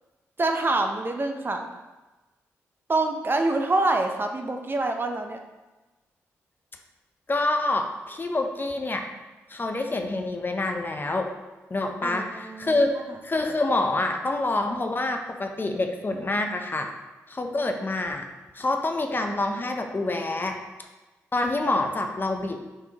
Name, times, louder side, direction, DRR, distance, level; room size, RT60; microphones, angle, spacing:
voice 1, 0.4-1.7 2.9-5.4 12.0-12.8, right 2 dB, 35° right, 4 dB, 0.5 m, -26 dB
voice 2, 7.3-9.0 9.5-11.3 11.7-12.9 13.2-16.9 17.3-18.3 18.6-20.6 21.3-22.6, left 2 dB, 30° left, 4 dB, 0.5 m, -27 dB
4.4 x 3.4 x 2.8 m, 1.1 s
hypercardioid pair, 40°, 6 cm